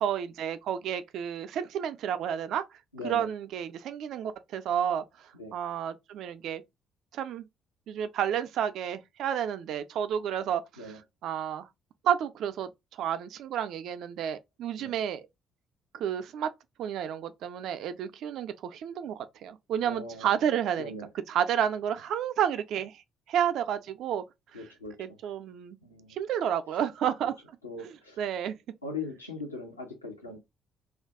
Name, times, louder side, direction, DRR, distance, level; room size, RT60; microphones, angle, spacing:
voice 1, 0.0-2.6 3.0-5.0 5.5-6.6 7.1-7.5 7.9-10.9 11.2-11.7 12.0-12.7 13.0-15.3 15.9-16.5 16.8-20.9 21.3-23.0 23.3-24.2 24.5-24.6 25.0-25.8 26.1-27.4 27.8-28.6, right 9 dB, 60° right, 0.3 m, -31 dB
voice 2, 2.9-3.3 5.3-5.6 10.8-11.0 14.8-14.9 19.8-20.4 20.8-21.1 24.5-25.2 25.8-26.2 27.6-28.2 28.8-30.4, left 3 dB, 85° left, 0.6 m, -40 dB
2.3 x 2.2 x 3.5 m
figure-of-eight pair, 45°, 0 cm